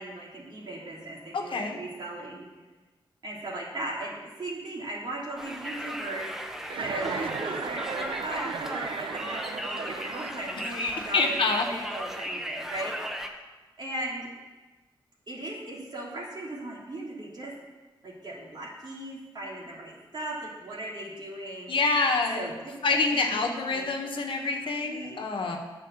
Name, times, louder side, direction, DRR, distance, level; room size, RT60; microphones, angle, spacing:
voice 1, 0.0-2.5 3.2-13.0 13.8-14.3 15.3-17.5 18.0-21.7 22.3-23.4 23.7-23.8 24.1-24.5 24.9-25.2, right 1 dB, 55° right, -4 dB, 3.0 m, -38 dB
voice 2, 1.3-1.8 10.6-11.7 21.7-22.5 22.8-25.6, left 3 dB, 75° left, 2 dB, 1.3 m, -27 dB
Conversation, 5.4-13.3, equal, 5° right, 0.9 m, -36 dB
Chuckle chortle, 6.6-10.7, right 6 dB, 75° right, 0.5 m, -36 dB
8.8 x 5.8 x 7.3 m, 1.2 s
cardioid pair, 70°, 9 cm